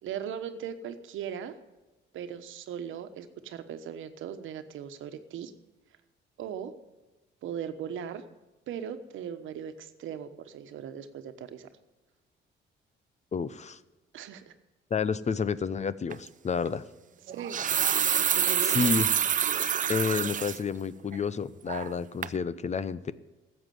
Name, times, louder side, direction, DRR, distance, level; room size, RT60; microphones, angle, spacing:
voice 1, 0.0-1.5 2.1-5.5 6.4-6.7 7.4-8.2 8.7-11.7 14.1-14.5 17.3-17.6 18.3-19.0, right 8 dB, 80° right, 9 dB, 1.2 m, -38 dB
voice 2, 13.3-13.8 14.9-16.8 18.6-19.1 19.9-23.1, left 5 dB, 35° left, 16 dB, 0.7 m, -30 dB
sound 1, 16.1-16.3 17.3-20.6 21.1-21.2 21.7-22.0 22.2-22.4, right 8 dB, 40° right, 0.5 m, -27 dB
13.5 x 8.2 x 9.3 m, 1.1 s
cardioid pair, 90°, 20 cm